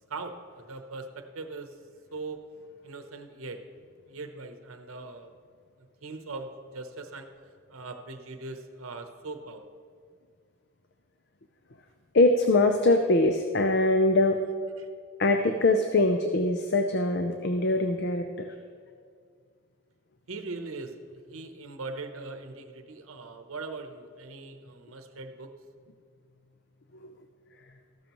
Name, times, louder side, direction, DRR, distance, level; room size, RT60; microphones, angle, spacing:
voice 1, 0.1-1.8 2.1-2.4 2.8-3.6 4.0-5.3 6.0-7.3 7.7-9.7 14.8-14.9 20.3-25.5, right 3 dB, 80° right, 6 dB, 0.8 m, -40 dB
voice 2, 12.1-14.4 15.2-18.5 27.0-27.1, left 2 dB, 50° left, 5 dB, 0.6 m, -23 dB
14.0 x 12.5 x 3.0 m, 2.1 s
head